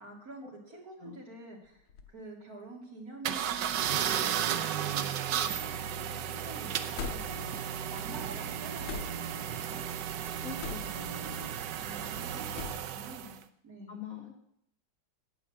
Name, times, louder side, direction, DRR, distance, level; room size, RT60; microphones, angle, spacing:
voice 1, 0.0-9.8 11.8-14.0, right 2 dB, 45° right, 0 dB, 3.1 m, -48 dB
sound 1, 1.7-2.2 3.0-3.1 4.3-4.6 4.8-5.4 6.9-7.5 8.8-9.4 10.6-11.1 12.5-13.0, left 7 dB, 90° left, 1.9 m, -42 dB
sound 2, 3.2-13.4, right 9 dB, 65° right, 1.2 m, -34 dB
voice 2, 10.4-11.4 13.9-14.4, left 7 dB, 45° left, 2 dB, 1.9 m, -44 dB
10.5 x 8.8 x 7.4 m, 0.73 s
omnidirectional pair, 2.3 m